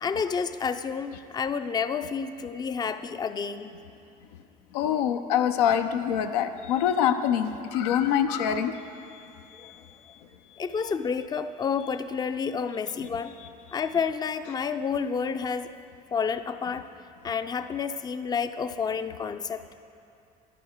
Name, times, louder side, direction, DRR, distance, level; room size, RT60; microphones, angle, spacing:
voice 1, 0.0-3.7 9.6-9.7 10.6-13.3 13.7-15.7 16.1-16.9 17.2-19.6, left 6 dB, 20° left, 10 dB, 0.4 m, -30 dB
voice 2, 4.7-8.7 9.1-10.2, left 9 dB, 90° left, 8 dB, 0.5 m, -26 dB
11.0 x 9.3 x 3.6 m, 2.6 s
hypercardioid pair, 70°, 20 cm